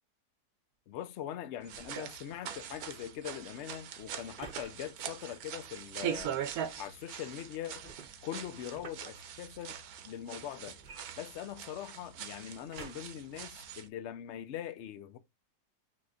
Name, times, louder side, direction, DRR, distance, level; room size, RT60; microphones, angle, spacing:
voice 1, 0.9-6.4 6.8-7.9 8.2-9.8 10.0-10.8 11.2-15.2, left 11 dB, 60° left, 0.7 m, -42 dB
sound 1, 1.6-13.9, right 9 dB, 70° right, 1.1 m, -42 dB
sound 2, 1.7-2.1 4.4-4.7 6.1-6.5 7.8-9.1 10.8-11.8 12.7-13.2 13.9-14.0, right 5 dB, 40° right, 0.7 m, -50 dB
5.9 x 3.0 x 2.5 m
omnidirectional pair, 1.7 m